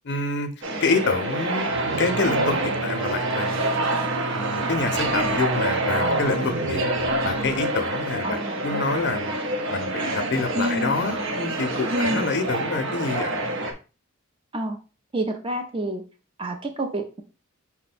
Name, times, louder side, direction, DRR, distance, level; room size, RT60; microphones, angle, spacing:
voice 1, 0.0-0.5 0.8-3.7 4.3-9.4 9.7-13.3, left 4 dB, 50° left, 6 dB, 0.6 m, -27 dB
sound 1, 0.6-13.7, right 1 dB, 60° right, 0.8 m, -27 dB
sound 2, 1.7-7.6, right 4 dB, 85° right, 0.5 m, -30 dB
voice 2, 8.2-8.8 10.5-10.9 11.9-12.2 14.5-14.8 15.1-16.0 16.4-17.2, right 1 dB, 25° right, 4 dB, 0.5 m, -28 dB
5.7 x 2.2 x 4.1 m, 0.33 s
head